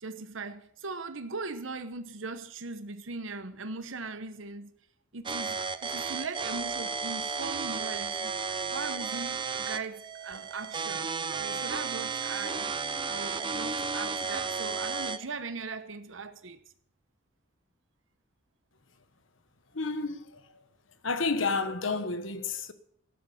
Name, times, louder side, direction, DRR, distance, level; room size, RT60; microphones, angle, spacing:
voice 1, 0.0-4.7 5.1-5.6 5.9-11.1 11.4-12.7 13.1-16.6, right 3 dB, 75° right, 1.1 m, -39 dB
sound 1, 5.3-15.3, right 5 dB, 25° right, 0.6 m, -33 dB
voice 2, 19.7-20.4 21.0-22.7, left 4 dB, 75° left, 1.2 m, -30 dB
13.5 x 11.5 x 7.1 m
head